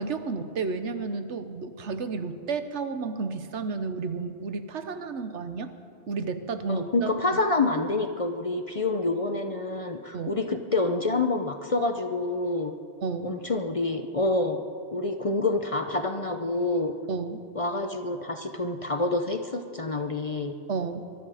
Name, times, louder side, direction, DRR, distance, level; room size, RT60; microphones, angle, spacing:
voice 1, 0.0-5.7 6.1-7.1 10.1-10.4 13.0-13.3 17.1-17.4 20.7-21.1, right 4 dB, 75° right, 9 dB, 1.3 m, -32 dB
voice 2, 6.7-12.7 13.2-14.6 14.9-16.9 17.5-20.5, left 2 dB, 35° left, 6 dB, 0.7 m, -27 dB
21.5 x 12.5 x 5.0 m, 2.5 s
omnidirectional pair, 1.2 m